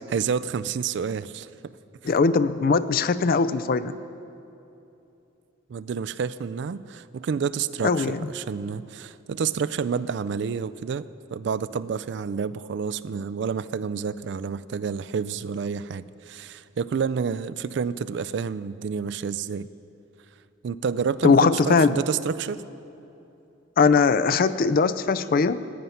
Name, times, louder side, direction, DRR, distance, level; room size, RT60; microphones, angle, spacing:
voice 1, 0.1-1.5 5.7-19.7 20.6-22.6, right 6 dB, 60° right, 15 dB, 0.3 m, -29 dB
voice 2, 2.0-3.9 7.8-8.3 21.2-22.0 23.8-25.6, left 4 dB, 45° left, 13 dB, 0.4 m, -20 dB
14.5 x 5.6 x 9.4 m, 2.8 s
head